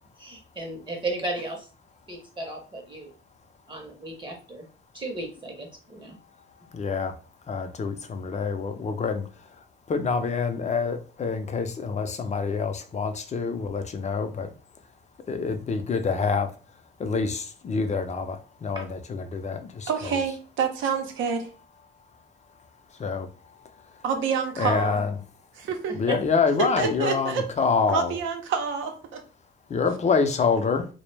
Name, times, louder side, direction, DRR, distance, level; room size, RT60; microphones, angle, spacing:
voice 1, 0.2-1.7 2.1-3.1 3.7-4.7 4.9-6.2 18.7-18.8 25.9-26.0, right 2 dB, 25° right, 1 dB, 0.7 m, -35 dB
voice 2, 6.7-7.1 7.5-14.5 15.3-16.5 17.0-20.1 22.9-24.0 24.6-25.1 25.9-28.2 29.7-30.9, left 5 dB, 35° left, 7 dB, 0.5 m, -27 dB
voice 3, 19.9-21.5 24.0-25.0 25.6-26.0 26.6-27.5 27.9-29.2, right 6 dB, 80° right, 5 dB, 0.6 m, -27 dB
2.1 x 2.1 x 3.1 m, 0.37 s
cardioid pair, 90°, 20 cm